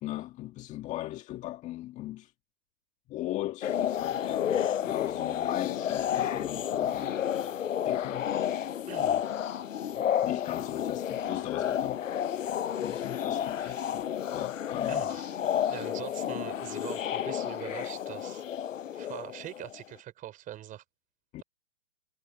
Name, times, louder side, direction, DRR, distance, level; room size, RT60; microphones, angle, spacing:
voice 1, 0.0-2.3 3.1-7.5 7.8-8.7 9.9-12.1 12.8-15.2 21.3-21.4, left 15 dB, 15° left, 1.8 m, -38 dB
sound 1, 3.6-19.8, left 10 dB, 50° left, 0.7 m, -31 dB
voice 2, 8.9-9.4 13.6-14.0 14.9-15.3 15.6-18.4 18.9-20.8, right 13 dB, 15° right, 5.1 m, -43 dB
figure-of-eight pair, 140°, 49 cm